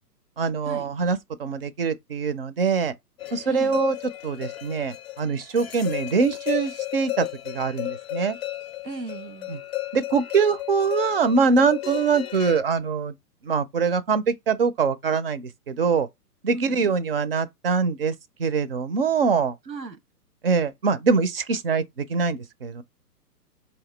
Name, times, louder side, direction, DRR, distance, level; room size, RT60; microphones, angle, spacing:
voice 1, 0.4-2.9 3.3-4.0 4.2-8.4 9.5-9.6 9.9-13.1 13.4-16.1 16.4-18.1 18.4-19.6 20.4-22.8, right 5 dB, 40° right, 0.4 m, -23 dB
sound 1, 3.2-12.6, left 16 dB, 40° left, 0.5 m, -33 dB
voice 2, 3.5-3.8 8.8-9.6 16.5-16.9 19.7-20.0, right 3 dB, 90° right, 1.0 m, -37 dB
4.5 x 2.9 x 3.2 m
figure-of-eight pair, 130°, 48 cm